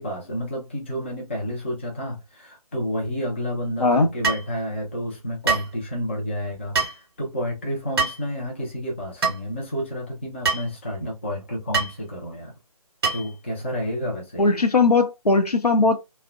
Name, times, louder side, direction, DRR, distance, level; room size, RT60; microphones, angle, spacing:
voice 1, 0.0-6.8 7.2-12.5 13.1-14.6, equal, 20° left, 0.4 m, -30 dB
voice 2, 3.8-4.1 14.4-16.0, left 3 dB, 80° left, 0.7 m, -19 dB
sound 1, 4.2-4.5 5.5-5.7 6.7-7.0 8.0-8.2 9.2-9.4 10.4-10.7 11.7-12.0 13.0-13.3, right 4 dB, 40° right, 0.7 m, -24 dB
2.7 x 2.0 x 2.3 m
figure-of-eight pair, 150°, 20 cm